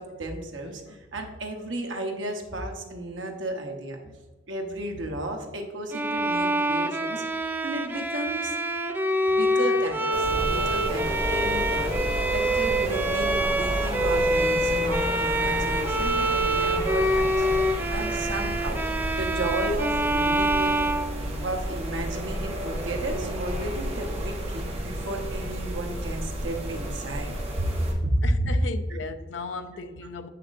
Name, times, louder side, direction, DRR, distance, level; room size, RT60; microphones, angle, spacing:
voice 1, 0.0-4.0 4.5-8.5 9.3-18.8 19.1-20.7 21.4-27.7 28.0-28.5, right 1 dB, 85° right, 1.0 m, -33 dB
Bowed string instrument, 5.9-21.8, right 1 dB, 10° right, 0.4 m, -26 dB
sound 1, 10.1-27.9, equal, 35° right, 1.1 m, -31 dB
voice 2, 28.2-30.3, left 3 dB, 80° left, 0.5 m, -36 dB
7.1 x 5.8 x 2.5 m
head